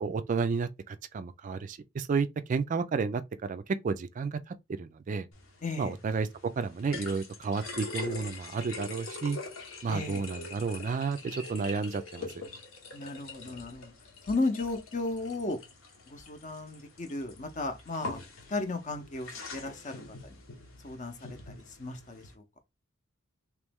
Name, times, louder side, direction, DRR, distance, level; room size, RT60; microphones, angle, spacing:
voice 1, 0.0-5.3 5.8-9.4 9.8-12.3, right 5 dB, 40° right, 0.3 m, -32 dB
sound 1, 5.3-22.3, left 3 dB, 75° left, 1.0 m, -44 dB
voice 2, 5.6-5.9 9.9-10.3 12.9-13.9 14.3-15.6 16.1-18.2 18.5-20.4 20.8-22.4, left 2 dB, 40° left, 0.7 m, -35 dB
3.1 x 3.0 x 3.4 m
head